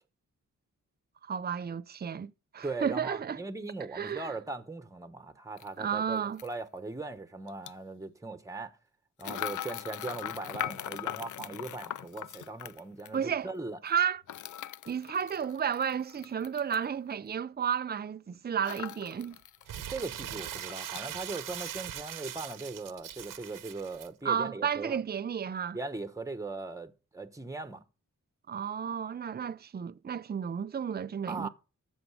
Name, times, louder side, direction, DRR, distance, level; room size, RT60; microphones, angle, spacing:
voice 1, 1.3-3.4 3.9-4.3 5.8-6.4 13.1-13.5 13.8-14.2 14.9-19.4 24.2-25.8 28.5-31.5, right 7 dB, 30° right, 0.5 m, -32 dB
voice 2, 2.6-8.8 9.2-13.8 19.9-25.0 25.7-27.8 31.3-31.5, right 3 dB, 10° right, 1.2 m, -39 dB
sound 1, 5.6-5.7 6.4-6.5 7.5-7.7 9.2-13.2 14.3-16.9 18.6-19.6 20.0-20.1 20.4-21.1 21.4-22.1 22.4-22.6, left 11 dB, 65° left, 0.5 m, -40 dB
Crumpling crinkling, 19.7-24.1, right 11 dB, 80° right, 0.6 m, -41 dB
14.0 x 6.3 x 4.9 m
cardioid pair, 70°, 32 cm